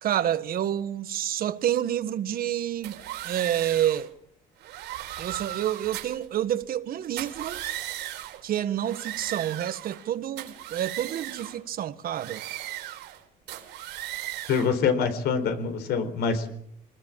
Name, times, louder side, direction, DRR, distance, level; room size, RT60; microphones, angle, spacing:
voice 1, 0.0-3.0 3.2-4.1 5.2-7.6 8.4-12.4, right 11 dB, 60° right, 1.6 m, -28 dB
sound 1, 2.8-4.1 4.6-6.2 7.0-8.4 8.8-10.1 10.4-11.6 12.1-13.2 13.5-14.7, right 14 dB, 85° right, 4.4 m, -37 dB
voice 2, 14.5-16.5, left 5 dB, 75° left, 4.3 m, -25 dB
25.0 x 20.0 x 7.5 m
cardioid pair, 110°, 17 cm